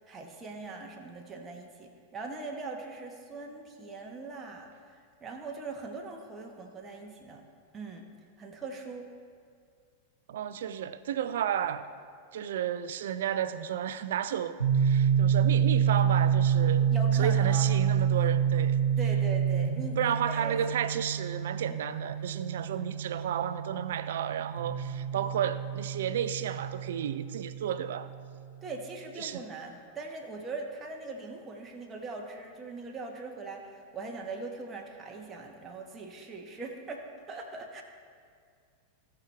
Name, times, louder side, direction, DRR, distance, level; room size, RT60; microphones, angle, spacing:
voice 1, 0.1-7.4 7.7-8.0 8.4-9.1 16.9-17.8 19.0-20.6 21.7-21.8 28.6-37.8, right 3 dB, 20° right, 1 dB, 1.3 m, -41 dB
voice 2, 10.3-11.9 12.3-16.9 17.2-18.8 20.0-28.1 29.2-29.4, right 9 dB, 60° right, 13 dB, 0.5 m, -32 dB
sound 1, 14.6-28.2, right 8 dB, 80° right, 1.3 m, -28 dB
17.5 x 6.0 x 3.4 m, 2.2 s
figure-of-eight pair, 90°, 0 cm